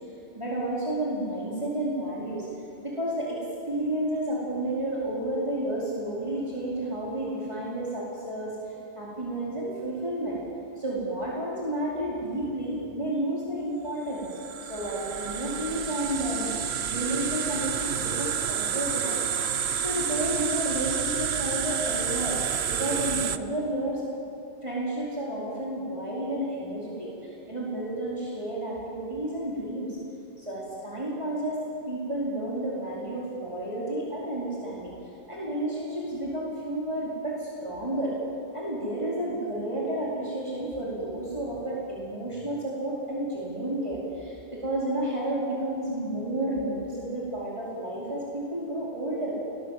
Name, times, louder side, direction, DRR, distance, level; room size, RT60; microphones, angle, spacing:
voice 1, 0.3-2.5 2.8-3.4 3.7-10.4 10.8-19.2 19.8-22.4 22.7-24.0 24.6-30.0 30.4-31.6 31.9-34.9 35.3-38.1 38.5-49.4, right 1 dB, 30° right, -7 dB, 4.8 m, -31 dB
sound 1, 14.2-23.4, right 8 dB, 85° right, 1.1 m, -29 dB
29.5 x 22.0 x 7.7 m, 2.8 s
omnidirectional pair, 1.0 m